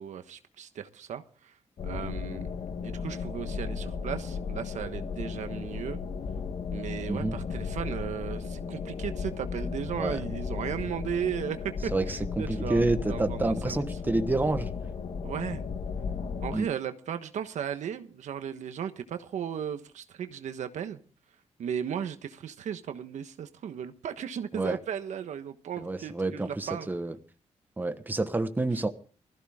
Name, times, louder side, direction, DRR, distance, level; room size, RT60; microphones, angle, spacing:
voice 1, 0.0-1.6 1.8-2.5 2.8-6.0 6.7-13.8 15.2-15.6 16.4-21.0 21.6-26.9 28.7-28.8, right 8 dB, 80° right, 1.2 m, -36 dB
sound 1, 1.8-16.6, left 5 dB, 60° left, 1.6 m, -35 dB
voice 2, 7.1-7.4 10.0-10.2 11.9-14.7 16.5-16.7 24.5-24.8 25.8-27.1 27.8-28.9, right 2 dB, 15° right, 1.3 m, -28 dB
20.0 x 14.5 x 3.7 m
cardioid pair, 110°, 12 cm